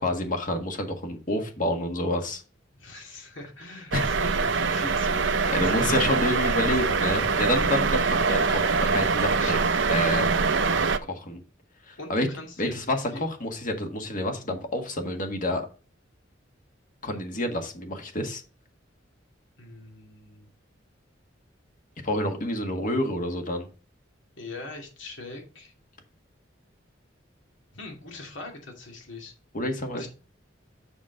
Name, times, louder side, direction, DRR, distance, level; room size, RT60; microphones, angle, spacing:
voice 1, 0.0-2.4 3.9-4.0 5.4-9.6 9.9-10.2 11.1-11.4 11.9-12.3 12.6-15.7 17.0-18.4 22.0-23.7 29.5-30.1, left 1 dB, 45° left, 4 dB, 1.6 m, -28 dB
voice 2, 2.8-6.3 9.3-9.6 12.0-12.8 13.1-13.2 19.6-20.5 24.4-25.7 27.7-29.3 29.9-30.1, left 3 dB, 75° left, 2 dB, 2.5 m, -41 dB
sound 1, 3.9-11.0, right 4 dB, 70° right, 0.6 m, -24 dB
7.1 x 6.6 x 3.6 m, 0.35 s
head